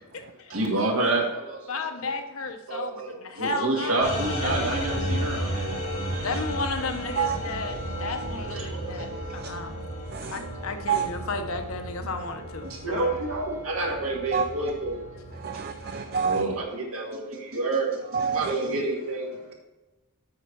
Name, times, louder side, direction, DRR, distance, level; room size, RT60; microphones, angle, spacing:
voice 1, 0.5-1.6 2.0-2.1 2.7-5.8 7.6-9.6 10.3-10.5 12.6-15.0 16.0-19.5, right 2 dB, 65° right, -1 dB, 2.1 m, -29 dB
voice 2, 1.7-4.1 4.4-5.2 6.2-9.7 10.2-13.1 15.8-15.9, left 3 dB, 65° left, 6 dB, 1.0 m, -33 dB
sound 1, 4.0-16.6, right 1 dB, 30° left, 3.1 m, -34 dB
voice 3, 15.4-16.4 18.1-18.5, right 7 dB, 45° right, 8 dB, 0.4 m, -27 dB
8.0 x 5.5 x 5.5 m, 1.1 s
head